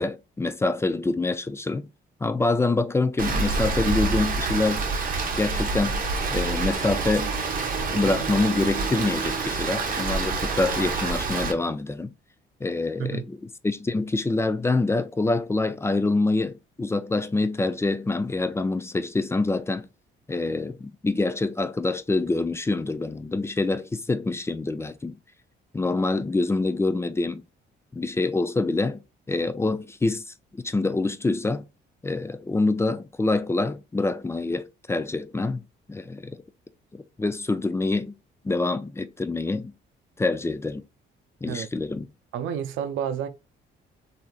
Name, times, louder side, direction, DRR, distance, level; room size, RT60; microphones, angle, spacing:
voice 1, 0.0-1.9 2.2-4.8 5.3-6.0 6.3-7.3 7.9-12.1 12.6-13.4 13.6-19.9 20.3-25.2 25.7-27.4 27.9-29.0 29.3-30.2 30.5-31.6 32.0-35.6 35.9-36.4 36.9-38.1 38.4-39.7 40.2-40.8 41.4-42.1, left 3 dB, 15° left, 0.3 m, -26 dB
Rain, 3.2-11.5, right 4 dB, 45° right, 0.8 m, -27 dB
voice 2, 42.3-43.3, right 8 dB, 85° right, 0.5 m, -30 dB
3.2 x 2.7 x 2.3 m
cardioid pair, 90°, 20 cm